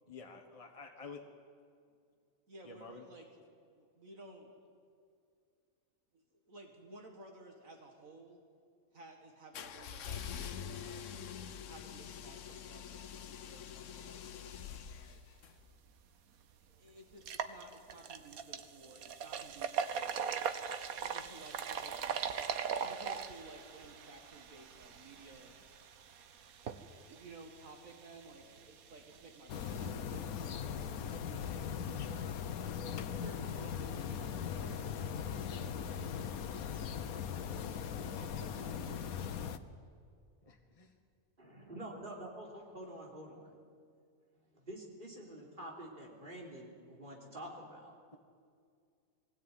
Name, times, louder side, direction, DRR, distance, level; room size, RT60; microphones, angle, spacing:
voice 1, 0.1-1.2 2.6-3.1 40.4-40.9, left 4 dB, 25° left, 2 dB, 1.4 m, -50 dB
voice 2, 2.5-3.3 3.6-4.6 6.1-8.4 8.9-11.1 11.7-15.2 16.7-20.5 21.0-22.2 22.8-25.6 27.1-31.6 33.0-36.4 37.7-39.3, right 2 dB, 70° right, 2 dB, 2.3 m, -55 dB
sound 1, 9.5-15.5, left 8 dB, 65° left, 1.1 m, -45 dB
sound 2, 15.9-16.0 16.4-16.5 17.1-29.9, right 7 dB, 90° right, 1.4 m, -41 dB
sound 3, 29.5-39.6, left 7 dB, 90° left, 1.3 m, -39 dB
voice 3, 41.4-43.5 44.6-48.0, right 1 dB, 35° right, -1 dB, 3.6 m, -47 dB
21.0 x 16.5 x 9.4 m, 2.2 s
omnidirectional pair, 1.5 m